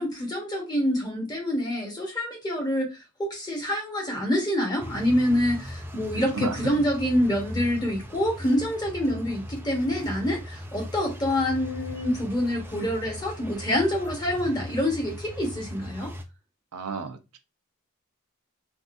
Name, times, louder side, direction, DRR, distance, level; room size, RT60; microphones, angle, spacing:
voice 1, 0.0-2.9 3.2-16.1, left 1 dB, 20° left, 1.0 m, -26 dB
sound 1, 4.8-16.2, equal, 10° right, 0.3 m, -39 dB
voice 2, 6.1-6.7 16.7-17.4, right 4 dB, 85° right, 0.5 m, -33 dB
3.5 x 2.5 x 2.5 m
head